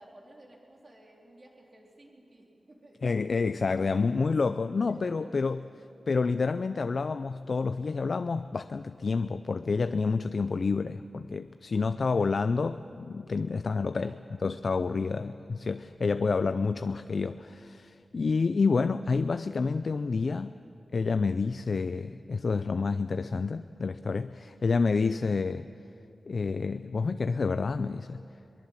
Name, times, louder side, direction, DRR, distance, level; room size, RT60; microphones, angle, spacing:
voice 1, 0.0-3.5 3.8-4.2 4.9-5.7 12.0-12.4 14.0-14.2 15.0-15.2 24.5-24.8, right 1 dB, 35° right, -1 dB, 3.7 m, -55 dB
voice 2, 3.0-5.6 6.1-14.1 14.4-20.5 20.9-25.7 26.3-28.2, left 4 dB, 50° left, 11 dB, 0.4 m, -29 dB
22.5 x 21.0 x 7.4 m, 2.7 s
wide cardioid pair, 150°, 0 cm